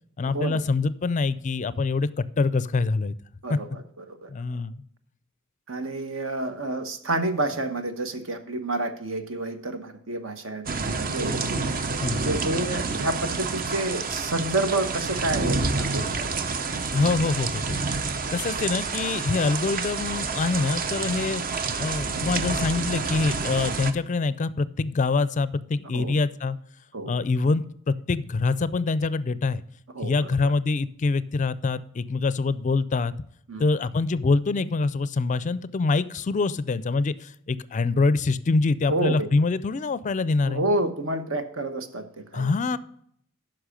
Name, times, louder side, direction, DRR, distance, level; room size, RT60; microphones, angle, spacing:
voice 1, 0.2-3.1 3.5-3.6 4.3-4.8 12.0-12.4 16.9-17.8 18.3-21.4 21.8-26.6 27.1-29.6 30.0-33.1 33.6-40.6 42.3-42.8, left 3 dB, 35° left, 17 dB, 0.4 m, -25 dB
voice 2, 3.4-4.3 5.7-11.4 12.2-16.3 25.9-26.2 26.9-27.1 29.9-30.3 33.5-33.7 38.9-39.3 40.4-42.5, right 2 dB, 70° right, 9 dB, 1.1 m, -29 dB
sound 1, 10.7-23.9, right 4 dB, 45° right, 0.7 m, -28 dB
9.7 x 6.1 x 5.1 m, 0.68 s
head